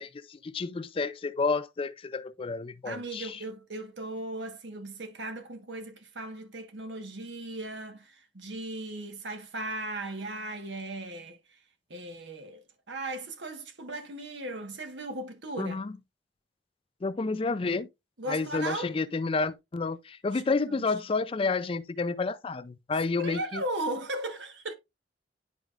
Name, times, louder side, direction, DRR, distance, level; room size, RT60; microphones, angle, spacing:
voice 1, 0.0-3.4 15.6-15.9 17.0-17.9 18.3-23.6, left 4 dB, 30° left, 0.4 m, -30 dB
voice 2, 2.8-11.6 11.9-15.8 18.2-18.9 20.3-20.8 23.2-24.7, right 1 dB, 90° right, 1.3 m, -37 dB
10.5 x 4.7 x 2.4 m
head